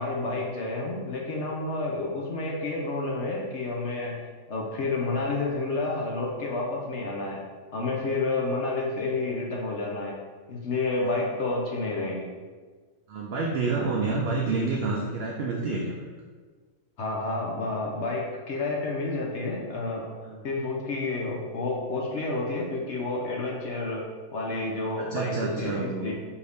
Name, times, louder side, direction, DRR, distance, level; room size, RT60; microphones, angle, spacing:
voice 1, 0.0-4.2 4.5-7.4 7.7-10.2 10.5-12.3 17.0-20.1 20.4-24.0 24.3-26.1, left 2 dB, 60° left, -2 dB, 0.8 m, -30 dB
voice 2, 13.1-16.1 20.2-20.4 25.1-26.1, right 3 dB, 70° right, -2 dB, 0.6 m, -29 dB
4.7 x 2.6 x 3.4 m, 1.4 s
omnidirectional pair, 1.6 m